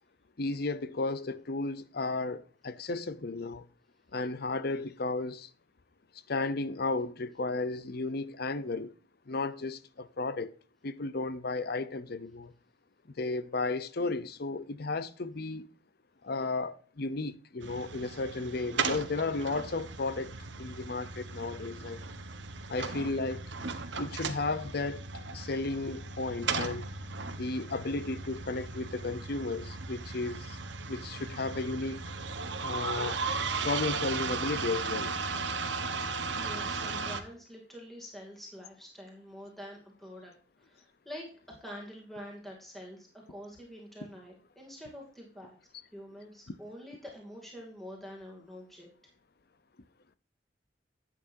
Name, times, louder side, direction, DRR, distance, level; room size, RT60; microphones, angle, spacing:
voice 1, 0.4-3.6 4.1-5.5 6.3-8.9 9.3-10.5 10.8-12.5 13.2-15.7 16.2-22.0 22.7-23.4 23.9-25.0 25.3-26.9 27.3-30.6 30.9-32.0 32.6-33.2 33.6-35.2, left 3 dB, 55° left, 0.7 m, -34 dB
sound 1, 17.6-37.2, right 4 dB, 75° right, 1.1 m, -36 dB
voice 2, 36.3-40.3 40.6-45.6 45.9-48.9, equal, ahead, 2.4 m, -46 dB
11.0 x 9.0 x 2.7 m
head